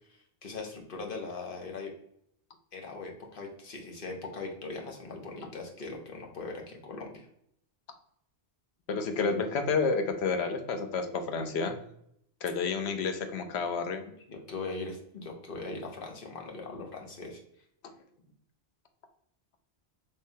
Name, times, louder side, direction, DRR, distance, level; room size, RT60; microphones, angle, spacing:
voice 1, 0.1-1.9 2.7-7.2 14.0-17.4, left 3 dB, 60° left, 1 dB, 1.0 m, -40 dB
voice 2, 8.9-11.8 12.4-14.0 17.8-17.9, left 4 dB, 85° left, 6 dB, 0.9 m, -30 dB
3.6 x 3.1 x 2.7 m, 0.71 s
omnidirectional pair, 1.1 m